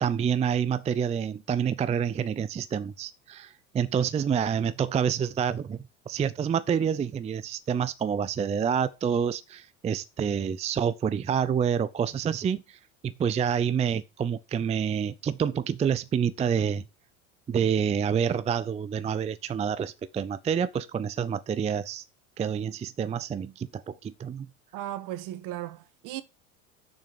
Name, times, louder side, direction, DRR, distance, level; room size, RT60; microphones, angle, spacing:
voice 1, 0.0-5.8 6.1-16.8 17.5-22.0 22.4-24.5, right 7 dB, 15° right, 0.5 m, -28 dB
voice 2, 24.7-26.2, right 13 dB, 50° right, 1.1 m, -36 dB
6.8 x 6.2 x 7.4 m
hypercardioid pair, 80°, 41 cm